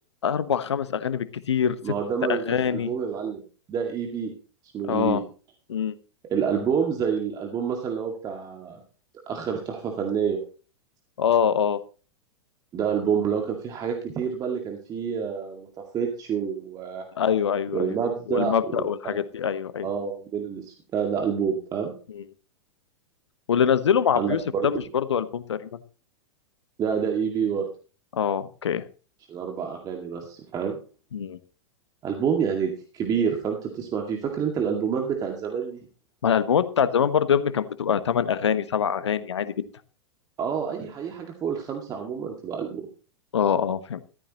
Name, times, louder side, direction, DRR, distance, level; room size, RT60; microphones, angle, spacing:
voice 1, 0.2-1.8 2.3-2.9 4.9-5.2 5.7-5.9 11.2-11.8 17.2-18.0 18.3-19.9 22.1-22.2 23.5-25.6 28.1-28.8 31.1-31.4 36.2-39.6 43.3-44.0, left 8 dB, 65° left, 14 dB, 1.1 m, -24 dB
voice 2, 1.8-3.4 3.7-4.3 4.7-5.2 6.3-8.8 9.3-10.4 12.7-15.7 15.9-17.0 17.7-19.2 19.8-21.9 24.2-24.7 26.8-27.7 29.3-30.8 32.0-35.8 40.4-42.9, right 7 dB, 25° right, 2 dB, 2.1 m, -28 dB
14.0 x 14.0 x 3.0 m, 0.38 s
figure-of-eight pair, 95°, 15 cm